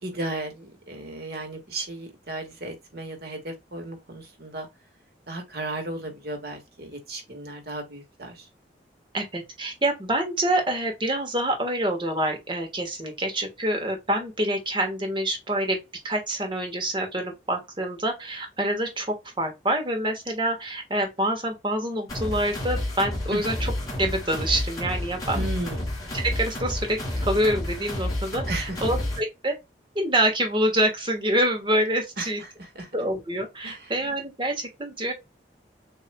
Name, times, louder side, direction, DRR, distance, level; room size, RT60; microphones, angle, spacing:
voice 1, 0.0-4.7 5.3-8.5 23.3-23.4 25.3-25.9 28.5-28.8 32.2-32.9 33.6-33.9, right 2 dB, 60° right, 1.6 m, -35 dB
voice 2, 9.1-15.8 16.0-19.1 19.4-23.7 24.0-25.4 26.2-29.5 29.9-32.4 32.9-35.1, right 1 dB, 25° right, 1.4 m, -26 dB
sound 1, 22.1-29.2, left 1 dB, 20° left, 2.2 m, -30 dB
6.8 x 3.0 x 2.2 m
head